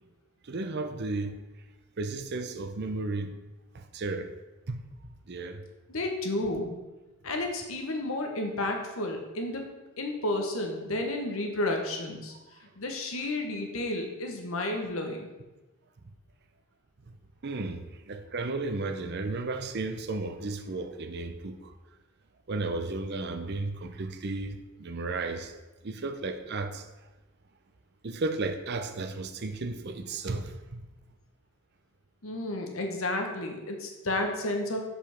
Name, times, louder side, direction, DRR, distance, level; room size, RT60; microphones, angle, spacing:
voice 1, 0.5-1.4 2.0-3.3 3.7-4.3 4.7-4.8 5.3-5.6 17.4-21.7 22.5-25.5 25.8-26.8 28.0-30.8, right 3 dB, 50° right, 0.6 m, -34 dB
voice 2, 5.9-6.7 7.2-9.6 10.0-12.3 12.8-15.3 32.2-34.8, left 1 dB, 70° left, 1.2 m, -31 dB
7.1 x 5.1 x 5.7 m
head